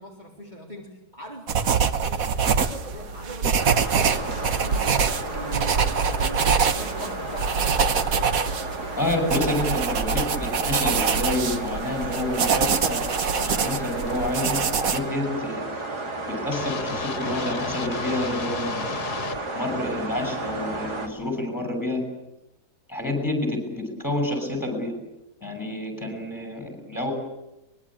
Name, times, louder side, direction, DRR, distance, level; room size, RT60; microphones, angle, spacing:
voice 1, 0.0-7.7, equal, 25° right, -2 dB, 3.5 m, -41 dB
sound 1, 1.5-15.0, right 6 dB, 60° right, 1.6 m, -24 dB
sound 2, 3.6-21.1, right 2 dB, 85° right, 3.6 m, -33 dB
voice 2, 9.0-13.0 13.4-15.7 16.3-19.0 19.5-22.0 22.9-25.0 25.4-27.1, left 1 dB, 10° left, 5 dB, 6.7 m, -28 dB
sound 3, 16.5-19.4, left 8 dB, 80° left, 1.7 m, -34 dB
23.5 x 21.5 x 8.9 m, 0.94 s
omnidirectional pair, 1.7 m